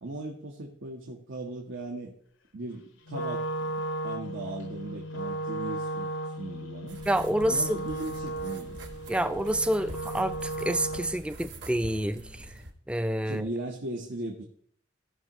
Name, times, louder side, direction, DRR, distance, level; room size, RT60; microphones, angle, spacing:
voice 1, 0.0-2.1 2.5-3.7 4.0-7.0 7.5-8.8 13.2-14.4, right 2 dB, 85° right, 0 dB, 1.1 m, -38 dB
Wind instrument woodwind instrument, 3.1-11.3, right 1 dB, 85° left, 0.8 m, -35 dB
sound 1, 6.9-12.7, right 1 dB, 65° right, 1.4 m, -45 dB
voice 2, 7.1-7.9 9.1-12.5 12.9-13.4, right 1 dB, 5° right, 10 dB, 0.4 m, -28 dB
16.0 x 6.2 x 3.0 m, 0.63 s
head